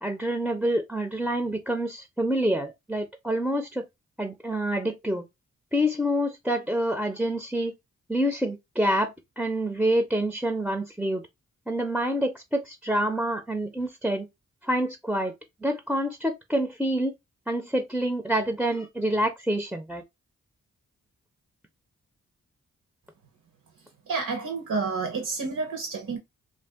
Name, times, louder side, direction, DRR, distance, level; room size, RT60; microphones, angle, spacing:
voice 1, 0.0-3.9 4.2-5.2 5.7-7.7 8.1-11.2 11.7-14.3 14.6-15.3 15.6-17.1 17.5-20.0, right 1 dB, 5° right, 0.5 m, -27 dB
voice 2, 24.1-26.2, right 4 dB, 70° right, 0.9 m, -29 dB
2.5 x 2.4 x 3.5 m
cardioid pair, 50°, 31 cm